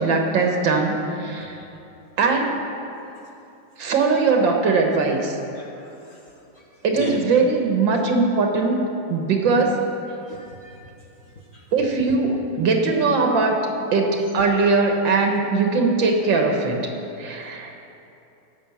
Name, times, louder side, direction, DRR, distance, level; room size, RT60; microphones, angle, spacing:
voice 1, 0.0-1.6 2.2-2.6 3.8-5.4 6.8-8.8 9.1-9.7 11.7-13.6 13.9-16.8 17.2-17.7, right 4 dB, 80° right, 2 dB, 2.0 m, -20 dB
voice 2, 5.5-6.2 6.9-7.2 10.1-10.8 11.5-11.6, equal, 40° left, -2 dB, 1.4 m, -35 dB
16.5 x 5.8 x 7.2 m, 2.8 s
omnidirectional pair, 2.0 m